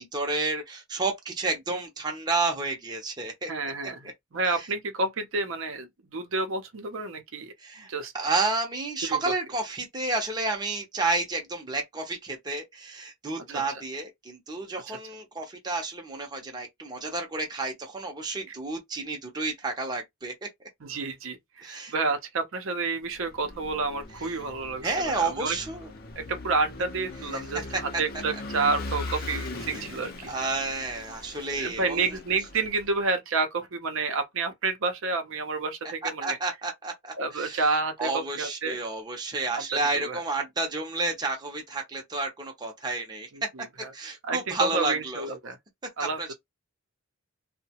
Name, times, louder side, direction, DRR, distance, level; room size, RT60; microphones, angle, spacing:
voice 1, 0.0-3.5 7.6-20.5 21.6-21.9 24.8-25.9 27.3-27.4 27.7-27.8 30.3-32.0 36.2-37.7 38.0-43.5 43.9-45.2 46.0-46.3, right 3 dB, 20° right, 0.6 m, -31 dB
voice 2, 3.5-7.5 7.8-8.1 9.0-9.3 13.5-13.6 14.9-15.0 20.8-25.6 26.2-30.3 31.6-36.4 37.2-38.8 39.5-39.6 39.9-40.2 43.3-43.9 44.2-45.6 46.0-46.2, right 3 dB, 60° right, 0.6 m, -30 dB
Vehicle / Engine, 23.1-33.0, left 2 dB, 45° left, 0.6 m, -40 dB
2.7 x 2.1 x 2.8 m
head